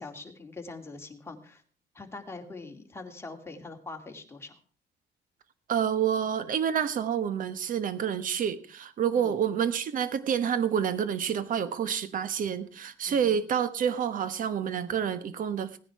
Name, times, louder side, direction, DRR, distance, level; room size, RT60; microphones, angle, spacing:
voice 1, 0.0-1.6 1.9-4.6 9.1-9.3 13.1-13.4, left 3 dB, 15° left, 2 dB, 2.4 m, -43 dB
voice 2, 5.7-15.8, right 8 dB, 55° right, 14 dB, 1.3 m, -28 dB
17.0 x 10.0 x 4.8 m, 0.40 s
cardioid pair, 110°, 17 cm